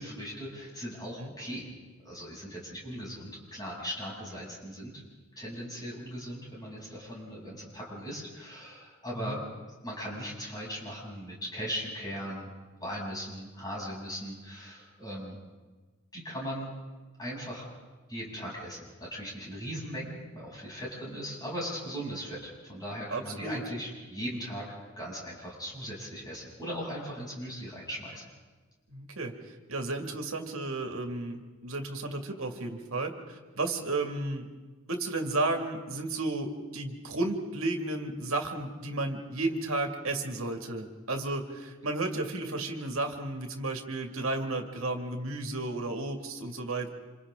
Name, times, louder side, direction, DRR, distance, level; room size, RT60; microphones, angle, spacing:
voice 1, 0.0-1.7 2.0-4.9 5.4-12.5 12.8-15.4 16.1-16.7 17.2-17.7 18.1-28.2, equal, 20° left, -5 dB, 7.8 m, -39 dB
voice 2, 23.1-23.6 28.9-29.3 29.7-34.5 34.9-46.9, right 2 dB, 70° right, 3 dB, 2.3 m, -33 dB
28.0 x 27.5 x 3.8 m, 1.3 s
head